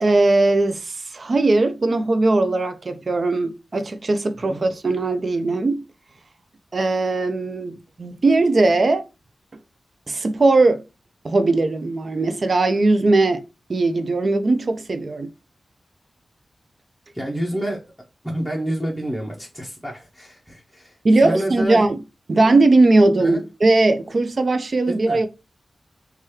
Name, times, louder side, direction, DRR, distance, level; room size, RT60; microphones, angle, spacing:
voice 1, 0.0-5.8 6.7-9.0 10.1-10.8 11.2-13.4 13.7-15.3 21.0-22.0 22.3-25.3, right 2 dB, 50° right, 0.3 m, -19 dB
voice 2, 17.1-17.8 18.2-21.9 23.2-23.4 24.9-25.2, right 1 dB, ahead, 0.6 m, -28 dB
2.9 x 2.3 x 3.1 m
wide cardioid pair, 110°, 0 cm